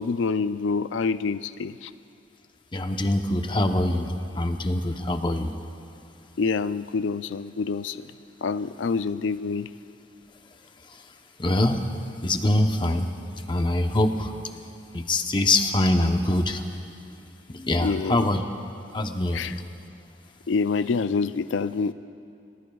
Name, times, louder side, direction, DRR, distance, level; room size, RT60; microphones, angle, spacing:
voice 1, 0.0-1.9 6.4-8.1 8.4-9.7 17.8-18.3 19.3-19.6 20.5-21.9, left 4 dB, 90° left, 13 dB, 0.4 m, -26 dB
voice 2, 2.7-5.5 11.4-11.9 12.2-13.1 13.5-14.3 14.9-16.6 17.5-18.4 18.9-19.6, left 1 dB, 25° left, 5 dB, 0.8 m, -24 dB
30.0 x 19.0 x 2.3 m, 2.5 s
head